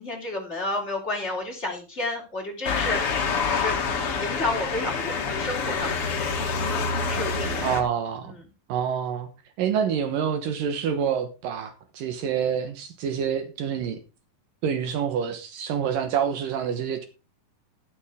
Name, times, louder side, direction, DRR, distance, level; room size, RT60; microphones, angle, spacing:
voice 1, 0.0-3.0 3.5-3.7 4.2-5.9 7.1-7.8 8.2-8.4, left 2 dB, 20° left, 3.1 m, -31 dB
Motor vehicle (road) / Siren, 2.6-7.8, left 5 dB, 45° left, 2.4 m, -27 dB
voice 2, 7.6-8.3 8.7-9.3 9.6-14.0 14.6-17.1, right 8 dB, 75° right, 2.8 m, -27 dB
12.0 x 11.5 x 3.6 m
omnidirectional pair, 4.1 m